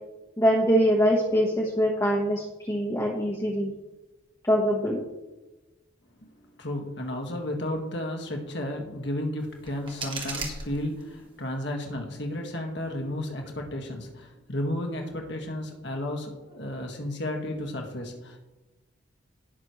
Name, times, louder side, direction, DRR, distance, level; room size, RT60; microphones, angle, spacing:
voice 1, 0.4-3.7 4.4-5.0, equal, 15° left, -4 dB, 1.3 m, -23 dB
voice 2, 6.2-18.4, left 1 dB, 60° left, 2 dB, 1.8 m, -33 dB
sound 1, 9.4-11.4, right 3 dB, 25° right, 1.7 m, -38 dB
18.0 x 6.4 x 3.2 m, 1.1 s
head